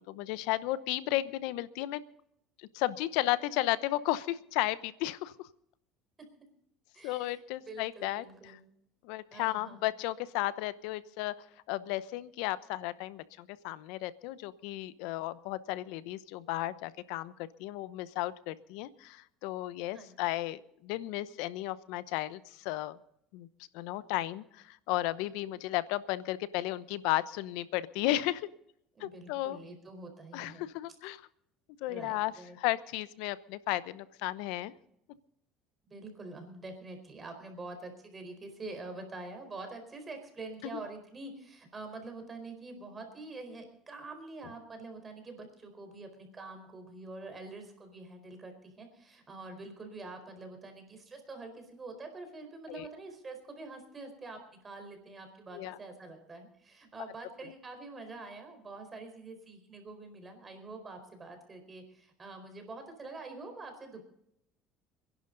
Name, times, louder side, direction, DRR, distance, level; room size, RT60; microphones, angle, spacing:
voice 1, 0.0-2.0 2.6-5.5 7.0-8.5 9.0-11.3 11.7-23.0 23.3-23.5 23.7-28.5 29.0-29.6 30.3-31.2 31.8-32.3 32.6-34.7 40.6-40.8 52.7-52.9 55.5-55.8, left 16 dB, 80° left, 16 dB, 0.8 m, -34 dB
voice 2, 6.9-8.6 9.3-9.8 19.9-20.2 25.4-25.6 28.9-30.7 31.9-32.6 35.8-64.0, right 3 dB, 25° right, 6 dB, 4.4 m, -46 dB
27.0 x 11.0 x 4.0 m, 0.76 s
supercardioid pair, 110°, 0 cm